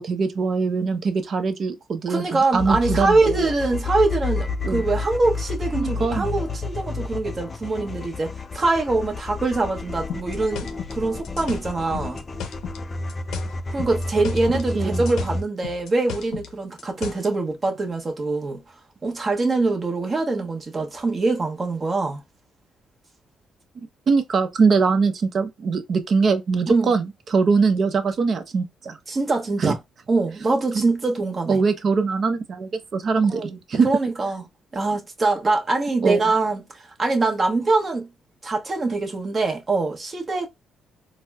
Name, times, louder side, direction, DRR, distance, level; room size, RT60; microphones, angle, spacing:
voice 1, 0.0-3.5 4.6-4.8 5.7-6.3 14.7-15.0 24.1-29.0 29.6-29.8 30.7-30.8 31.5-33.9 36.0-36.2, right 4 dB, 50° right, 0.7 m, -22 dB
voice 2, 2.1-12.2 13.7-18.6 19.0-22.2 26.7-26.9 29.1-29.8 30.1-31.6 33.3-33.6 33.8-34.4 34.7-38.1 38.4-40.5, right 3 dB, 35° right, 1.0 m, -23 dB
sound 1, 2.5-15.4, left 3 dB, 30° left, 0.4 m, -30 dB
sound 2, 10.1-12.8 13.1-14.7 14.9-17.3, left 8 dB, 80° left, 0.6 m, -35 dB
4.1 x 2.1 x 2.2 m
cardioid pair, 90°, 0 cm